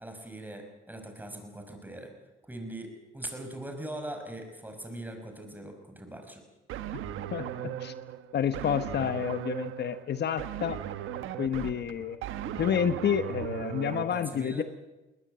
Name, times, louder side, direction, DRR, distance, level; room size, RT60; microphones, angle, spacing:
voice 1, 0.0-2.1 2.4-6.4 14.1-14.6, right 1 dB, 10° right, 5 dB, 5.5 m, -41 dB
sound 1, 6.7-14.0, right 11 dB, 90° right, 1.3 m, -37 dB
voice 2, 7.3-7.9 8.3-10.8 11.4-12.2 12.5-14.6, left 8 dB, 60° left, 12 dB, 1.0 m, -29 dB
21.0 x 19.5 x 8.9 m, 1.1 s
cardioid pair, 90°, 20 cm